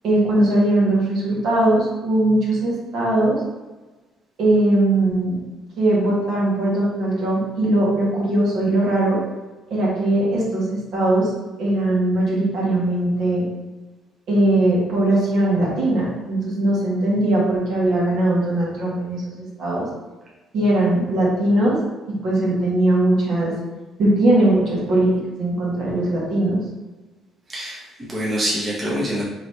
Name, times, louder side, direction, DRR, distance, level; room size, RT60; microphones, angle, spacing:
voice 1, 0.0-3.4 4.4-5.4 5.8-9.2 9.7-11.3 11.6-13.4 14.3-19.9 20.5-21.8 22.1-23.5 24.0-25.1 25.4-26.6, right 1 dB, 70° right, -5 dB, 1.5 m, -20 dB
voice 2, 27.5-29.2, equal, 25° right, -6 dB, 1.0 m, -25 dB
3.9 x 3.0 x 3.2 m, 1.2 s
cardioid pair, 100°, 0 cm